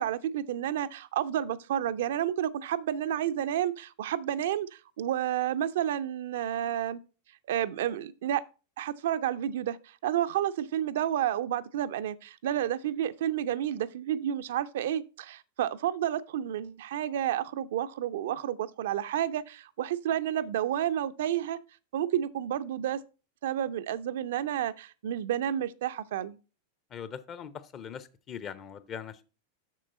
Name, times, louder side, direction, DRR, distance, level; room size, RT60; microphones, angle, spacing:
voice 1, 0.0-4.7 5.0-7.0 7.5-8.4 8.8-9.8 10.0-21.6 21.9-23.0 23.4-26.4, right 11 dB, 55° right, 0.4 m, -30 dB
voice 2, 26.9-29.2, left 8 dB, 30° left, 0.7 m, -41 dB
7.5 x 6.5 x 4.1 m
figure-of-eight pair, 90°, 0 cm